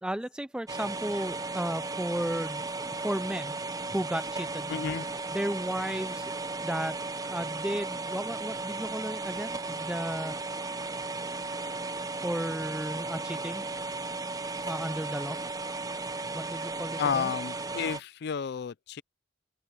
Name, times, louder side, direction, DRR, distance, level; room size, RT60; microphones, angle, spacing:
voice 1, 0.0-3.5 3.9-4.8 5.3-6.3 6.6-7.0 7.3-10.4 12.2-13.7 14.6-15.4 16.3-17.3, right 1 dB, 5° right, 0.4 m, -34 dB
sound 1, 0.7-18.0, right 3 dB, 20° right, 0.8 m, -35 dB
voice 2, 4.7-5.1 17.0-19.0, left 7 dB, 65° left, 0.4 m, -31 dB
open air
head